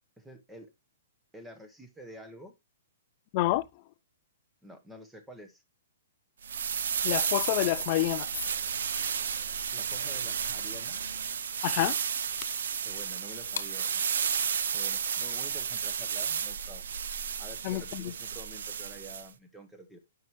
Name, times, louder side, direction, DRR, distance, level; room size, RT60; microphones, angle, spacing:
voice 1, 0.2-0.7 1.3-2.5 4.6-5.6 9.7-11.1 12.8-14.0 14.7-16.8 17.4-20.0, right 1 dB, 5° right, 0.8 m, -48 dB
voice 2, 3.3-3.7 7.0-8.3 11.6-12.0 17.6-18.1, left 17 dB, 30° left, 0.3 m, -28 dB
sound 1, 6.4-19.3, right 7 dB, 70° right, 0.6 m, -32 dB
sound 2, 8.6-14.0, left 6 dB, 85° left, 0.9 m, -48 dB
9.3 x 5.5 x 3.0 m
hypercardioid pair, 170°, 0 cm